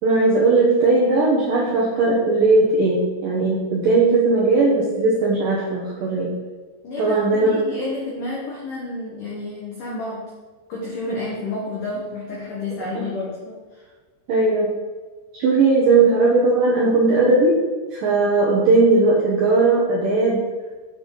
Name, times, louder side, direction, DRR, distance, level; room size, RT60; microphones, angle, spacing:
voice 1, 0.0-6.4 7.0-7.6 12.9-13.0 14.3-14.7 15.3-17.6 17.9-20.4, right 3 dB, 75° right, -5 dB, 2.0 m, -18 dB
voice 2, 6.8-10.3 10.7-13.9, left 2 dB, 80° left, -4 dB, 1.9 m, -30 dB
8.7 x 8.1 x 4.0 m, 1.3 s
omnidirectional pair, 5.9 m